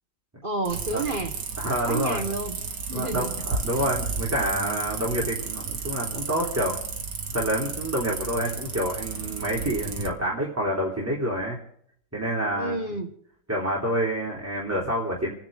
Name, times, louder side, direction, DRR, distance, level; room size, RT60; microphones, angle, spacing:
voice 1, 0.4-1.3 1.8-2.6 2.9-3.3 5.0-5.1 12.6-13.1, right 2 dB, 25° right, 4 dB, 1.6 m, -30 dB
sound 1, 0.7-10.1, right 4 dB, 60° right, 2.2 m, -33 dB
voice 2, 1.6-2.2 2.9-6.8 7.3-11.6 12.1-12.8 13.5-15.3, equal, 5° right, -4 dB, 3.2 m, -27 dB
29.5 x 10.5 x 3.8 m, 0.66 s
omnidirectional pair, 2.2 m